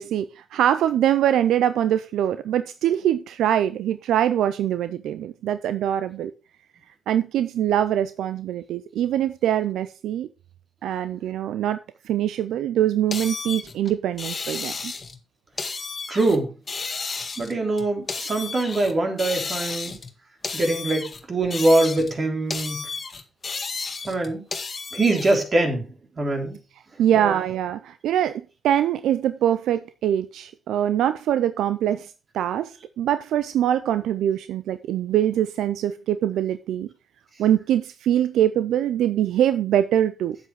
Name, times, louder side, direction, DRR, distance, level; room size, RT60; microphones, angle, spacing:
voice 1, 0.0-6.3 7.1-10.3 10.8-11.8 12.1-14.9 27.0-36.9 37.4-40.4, right 11 dB, 90° right, 0.4 m, -23 dB
sound 1, 13.1-15.2 15.6-16.4 16.7-18.9 19.2-20.1 20.4-22.2 22.5-25.4, left 4 dB, 40° left, 1.6 m, -32 dB
voice 2, 16.1-16.5 17.4-20.0 20.5-22.8 24.1-24.4 24.9-25.9 26.2-26.6 27.2-27.3, right 2 dB, 45° right, 3.3 m, -23 dB
8.2 x 7.7 x 4.8 m
cardioid pair, 70°, 0 cm